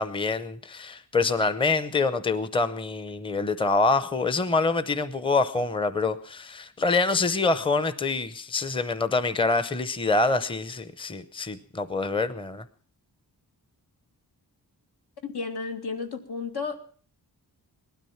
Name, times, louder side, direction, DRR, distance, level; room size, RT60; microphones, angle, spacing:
voice 1, 0.0-12.6, left 3 dB, 15° left, 14 dB, 0.7 m, -26 dB
voice 2, 15.2-16.8, left 5 dB, 80° left, 6 dB, 2.3 m, -32 dB
19.0 x 12.5 x 5.7 m, 0.44 s
wide cardioid pair, 170°, 39 cm